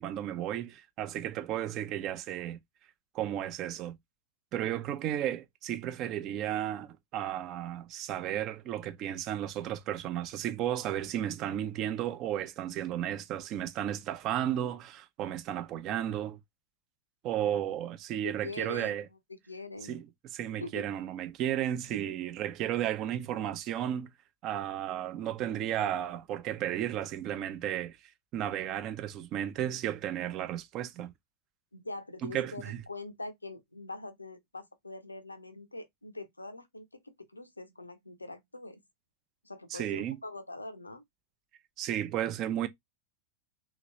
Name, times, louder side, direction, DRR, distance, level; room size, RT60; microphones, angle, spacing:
voice 1, 0.0-2.6 3.1-4.0 4.5-16.4 17.2-19.0 19.9-20.0 20.3-24.1 24.4-28.0 28.3-31.1 32.2-32.8 39.7-40.2 41.8-42.7, right 11 dB, 35° right, 0.5 m, -33 dB
voice 2, 18.1-19.0 19.3-20.0 20.6-20.8 22.0-22.1 31.7-38.8 39.4-41.0, left 2 dB, 85° left, 0.5 m, -43 dB
3.1 x 2.9 x 2.7 m
figure-of-eight pair, 90°, 0 cm